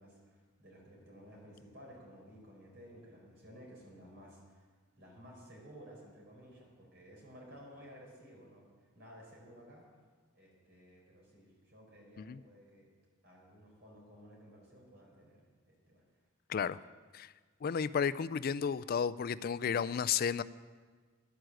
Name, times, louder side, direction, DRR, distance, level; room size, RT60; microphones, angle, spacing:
voice 1, 0.0-9.8 10.3-12.9 13.2-16.0, equal, 55° right, -2 dB, 4.7 m, -55 dB
voice 2, 17.6-20.4, left 7 dB, 45° left, 17 dB, 0.3 m, -32 dB
11.5 x 9.6 x 7.7 m, 1.5 s
head